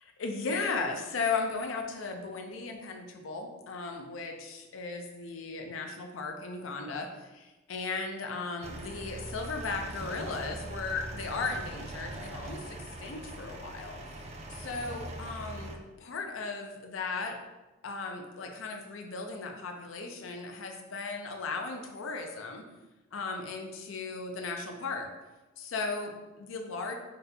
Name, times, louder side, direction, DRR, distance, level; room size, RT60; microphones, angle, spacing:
voice 1, 0.2-14.0 14.5-17.4 17.8-22.7 23.1-25.1 25.6-27.0, left 4 dB, 80° left, 3 dB, 0.5 m, -36 dB
sound 1, 8.6-15.8, right 2 dB, 35° right, 0.3 m, -42 dB
4.0 x 2.2 x 2.7 m, 1.1 s
head